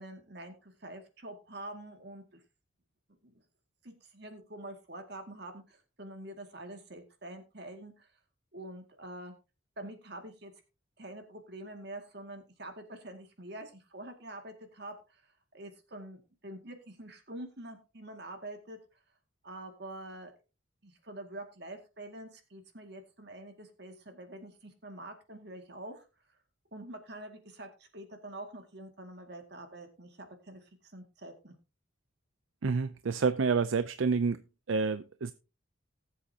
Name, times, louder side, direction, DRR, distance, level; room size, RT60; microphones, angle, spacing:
voice 1, 0.0-2.4 3.1-3.3 3.8-8.1 8.5-9.4 9.8-10.5 11.0-15.2 15.5-18.8 19.4-20.3 20.8-26.1 26.7-31.5, right 1 dB, 55° right, 2.2 m, -46 dB
voice 2, 32.6-34.4 34.7-35.3, right 5 dB, 75° right, 0.5 m, -28 dB
18.5 x 7.7 x 2.8 m
head